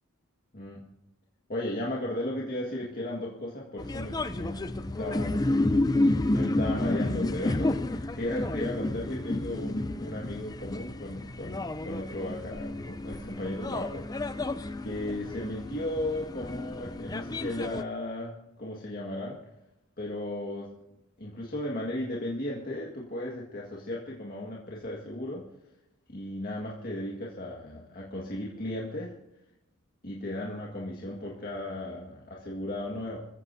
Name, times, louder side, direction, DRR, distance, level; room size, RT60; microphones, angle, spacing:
voice 1, 0.5-0.8 1.5-5.5 6.3-14.1 14.8-18.3 18.6-19.4 20.0-20.7 21.2-25.5 26.1-29.1 30.0-33.2, left 1 dB, 45° left, -3 dB, 1.8 m, -35 dB
sound 1, 3.8-17.8, left 2 dB, 20° left, 0.5 m, -30 dB
25.5 x 15.0 x 2.7 m, 0.88 s
head